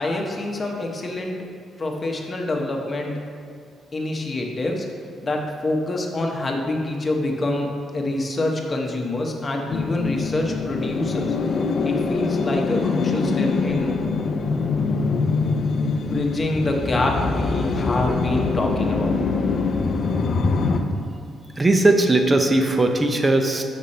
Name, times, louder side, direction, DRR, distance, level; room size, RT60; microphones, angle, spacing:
voice 1, 0.0-1.4 1.8-3.2 3.9-4.9 5.2-11.4 11.8-13.9 16.0-19.1, left 2 dB, 30° left, 1 dB, 1.0 m, -26 dB
sound 1, 9.7-20.8, left 4 dB, 55° left, 0.5 m, -23 dB
voice 2, 21.6-23.6, right 2 dB, 25° right, 4 dB, 0.7 m, -18 dB
6.1 x 5.3 x 4.2 m, 2.2 s
cardioid pair, 90°, 0 cm